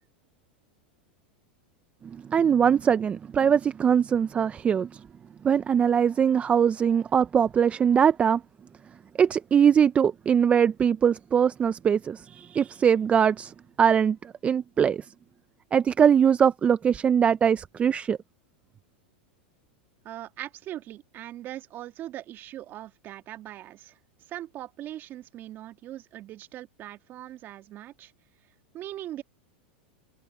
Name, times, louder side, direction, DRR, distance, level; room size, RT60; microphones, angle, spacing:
voice 1, 2.0-5.0 5.4-8.4 9.2-15.0 15.7-18.2, right 7 dB, 25° right, 0.6 m, -22 dB
voice 2, 20.0-24.0 24.3-28.1 28.7-29.2, right 13 dB, 40° right, 2.2 m, -40 dB
open air
hypercardioid pair, 110°, 5 cm